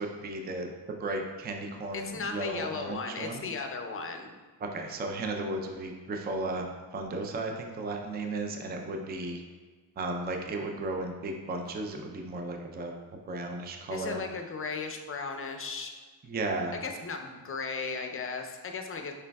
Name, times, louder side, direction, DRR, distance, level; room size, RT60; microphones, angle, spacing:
voice 1, 0.0-3.4 4.6-9.4 10.0-14.2 16.2-16.8, right 2 dB, 25° right, 3 dB, 0.4 m, -35 dB
voice 2, 1.9-4.3 13.9-15.9 16.8-19.1, left 4 dB, 35° left, 4 dB, 0.5 m, -36 dB
5.0 x 3.3 x 2.2 m, 1.4 s
cardioid pair, 85°, 41 cm